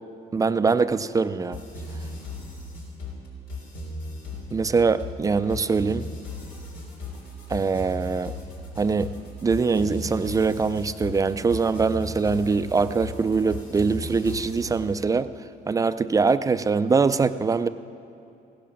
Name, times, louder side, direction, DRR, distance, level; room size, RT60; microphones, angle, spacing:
voice 1, 0.3-1.6 4.5-6.1 7.5-8.3 8.8-9.1 9.4-15.3 15.7-17.7, right 4 dB, 20° right, 12 dB, 0.4 m, -23 dB
sound 1, 1.5-14.8, left 2 dB, 90° left, 3.4 m, -37 dB
16.0 x 11.0 x 6.3 m, 2.7 s
cardioid pair, 110°, 17 cm